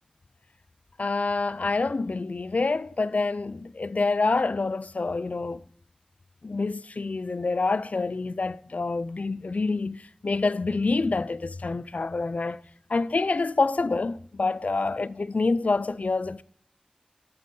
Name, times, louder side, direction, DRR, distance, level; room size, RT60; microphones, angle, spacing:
voice 1, 1.0-5.6 6.4-12.6 12.9-16.4, left 3 dB, 85° left, 0.3 m, -27 dB
10.0 x 7.2 x 3.7 m
wide cardioid pair, 55°, 2 cm